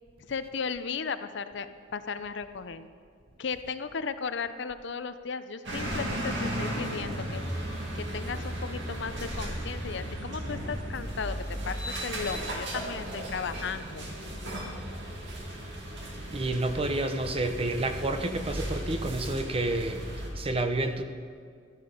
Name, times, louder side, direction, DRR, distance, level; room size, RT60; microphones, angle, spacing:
voice 1, 0.2-2.9 3.4-7.4 7.7-11.4 11.7-14.0, left 5 dB, 65° left, 11 dB, 0.6 m, -36 dB
sound 1, 5.6-20.3, right 1 dB, 65° right, 2.3 m, -35 dB
voice 2, 16.3-20.1 20.3-21.0, right 2 dB, 30° right, 7 dB, 0.8 m, -29 dB
14.0 x 11.5 x 5.2 m, 2.2 s
head